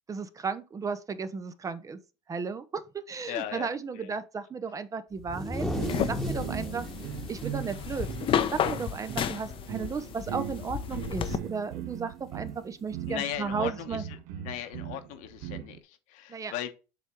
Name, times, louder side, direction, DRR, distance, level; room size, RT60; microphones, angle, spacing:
voice 1, 0.1-2.0 2.3-5.6 6.1-6.9 7.3-8.1 8.5-14.0 16.3-16.5, right 5 dB, 25° right, 0.7 m, -34 dB
voice 2, 3.3-4.1 13.1-16.7, left 11 dB, 65° left, 1.2 m, -38 dB
sound 1, 5.2-8.9 9.2-9.4 9.8-10.2 11.3-11.4 12.5-12.6, equal, ahead, 1.2 m, -36 dB
sound 2, 5.7-15.8, right 10 dB, 70° right, 0.8 m, -40 dB
sound 3, 5.8-11.4, left 9 dB, 40° left, 0.7 m, -32 dB
7.2 x 3.4 x 4.6 m
supercardioid pair, 105°, 14 cm